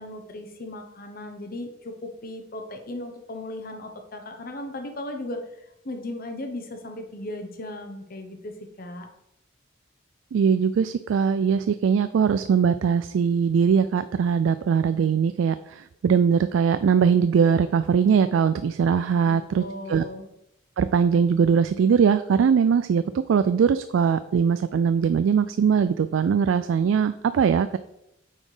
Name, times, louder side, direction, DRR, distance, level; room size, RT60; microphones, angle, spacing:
voice 1, 0.0-8.5 8.8-9.1 19.2-20.3, left 1 dB, 50° left, 5 dB, 0.9 m, -37 dB
voice 2, 10.3-20.0 20.8-23.0 23.3-27.8, right 6 dB, 80° right, 12 dB, 0.3 m, -21 dB
8.8 x 4.2 x 4.9 m, 0.83 s
head